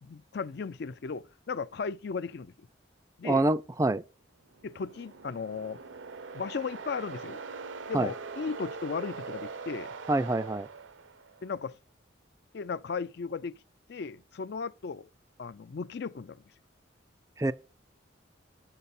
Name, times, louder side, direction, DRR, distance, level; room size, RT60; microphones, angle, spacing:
voice 1, 0.0-2.5 3.2-3.4 4.6-5.8 6.3-7.4 7.9-9.9 11.4-11.8 12.5-13.6 13.9-15.1 15.4-16.4, left 5 dB, 55° left, 0.4 m, -36 dB
voice 2, 3.2-4.0 7.9-8.1 10.1-10.7 17.4-17.5, right 2 dB, 15° right, 0.4 m, -26 dB
sound 1, 4.5-11.5, right 4 dB, 80° right, 0.8 m, -42 dB
7.8 x 6.7 x 4.2 m
head